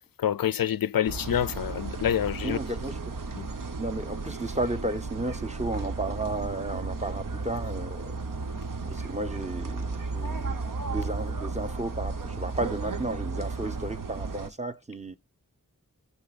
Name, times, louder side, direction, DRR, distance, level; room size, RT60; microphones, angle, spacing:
voice 1, 0.2-2.6 3.3-3.6, left 10 dB, 90° left, 0.5 m, -27 dB
sound 1, 1.1-14.5, right 3 dB, 70° right, 1.0 m, -34 dB
voice 2, 2.4-3.2 3.8-8.2 8.9-10.6 10.9-15.2, right 2 dB, 20° right, 0.8 m, -33 dB
14.0 x 5.5 x 2.4 m
wide cardioid pair, 55°, 34 cm